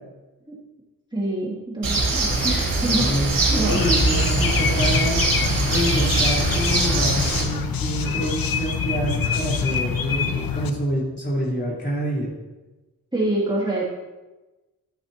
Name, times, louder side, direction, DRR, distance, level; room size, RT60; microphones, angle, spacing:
voice 1, 1.1-3.1 3.5-3.8 13.1-13.9, right 1 dB, 15° right, -7 dB, 2.2 m, -26 dB
Bird, 1.8-7.4, right 2 dB, 65° right, 3.7 m, -22 dB
voice 2, 3.0-5.3 5.6-12.3, right 1 dB, 30° left, -5 dB, 3.5 m, -27 dB
sound 1, 3.7-10.7, left 6 dB, 75° left, 0.8 m, -25 dB
13.5 x 8.6 x 2.8 m, 1.1 s
wide cardioid pair, 120°, 35 cm